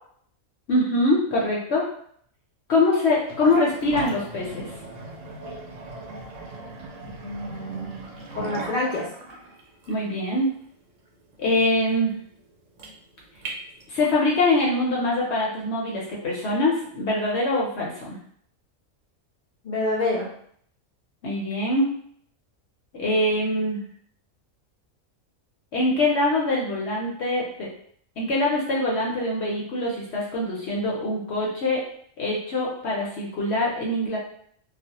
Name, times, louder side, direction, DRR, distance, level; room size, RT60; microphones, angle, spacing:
voice 1, 0.7-1.8 2.7-4.7 9.9-10.5 11.4-12.2 13.9-18.2 21.2-21.9 22.9-23.8 25.7-27.7 28.2-31.8 32.2-34.2, left 2 dB, 60° left, -3 dB, 0.8 m, -24 dB
sound 1, 3.2-14.3, right 2 dB, 70° right, 0.9 m, -38 dB
voice 2, 7.2-9.1 19.6-20.3, left 2 dB, 80° left, -5 dB, 0.4 m, -28 dB
2.4 x 2.0 x 2.8 m, 0.63 s
omnidirectional pair, 1.5 m